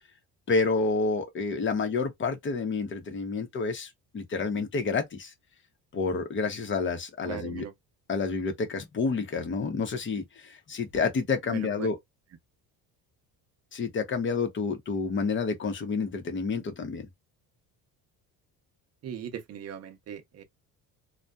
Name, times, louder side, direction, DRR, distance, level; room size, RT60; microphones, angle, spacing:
voice 1, 0.5-5.3 5.9-7.7 8.1-12.0 13.7-17.1, left 4 dB, 35° left, 0.8 m, -29 dB
voice 2, 7.2-7.7 11.5-11.9 19.0-20.4, right 9 dB, 45° right, 0.7 m, -39 dB
2.6 x 2.3 x 2.3 m
cardioid pair, 130°, 36 cm